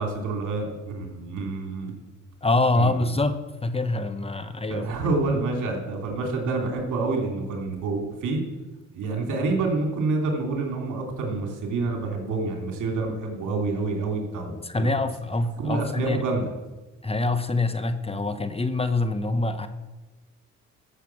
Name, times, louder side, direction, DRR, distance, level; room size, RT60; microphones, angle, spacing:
voice 1, 0.0-1.9 2.8-2.9 4.7-8.4 8.9-14.9 15.6-16.4, right 3 dB, 80° right, 2 dB, 3.0 m, -28 dB
voice 2, 2.4-4.8 14.6-16.2 17.0-19.7, left 2 dB, 20° left, 10 dB, 0.9 m, -25 dB
13.5 x 7.0 x 7.1 m, 1.2 s
cardioid pair, 90°, 30 cm